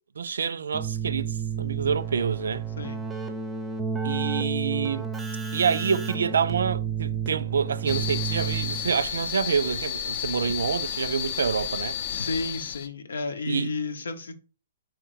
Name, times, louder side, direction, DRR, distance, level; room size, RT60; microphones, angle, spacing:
voice 1, 0.2-2.6 4.0-5.0 5.5-12.0 13.5-13.7, right 6 dB, 80° right, 0.3 m, -27 dB
Keyboard (musical), 0.7-9.1, right 7 dB, 10° right, 0.6 m, -31 dB
sound 1, 7.9-12.9, left 9 dB, 50° left, 0.5 m, -32 dB
voice 2, 12.1-14.3, left 3 dB, 85° left, 0.8 m, -32 dB
3.6 x 3.0 x 4.7 m
hypercardioid pair, 145°, 0 cm